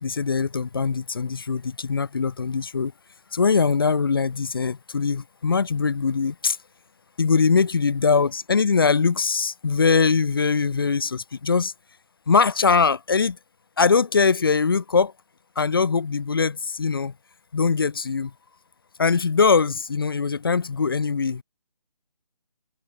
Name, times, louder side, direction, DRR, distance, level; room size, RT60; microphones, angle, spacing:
voice 1, 0.0-2.9 3.3-6.6 7.2-11.7 12.3-13.4 13.8-15.1 15.6-17.1 17.5-18.3 19.0-21.4, left 5 dB, 35° left, 0.5 m, -22 dB
figure-of-eight pair, 160°, 21 cm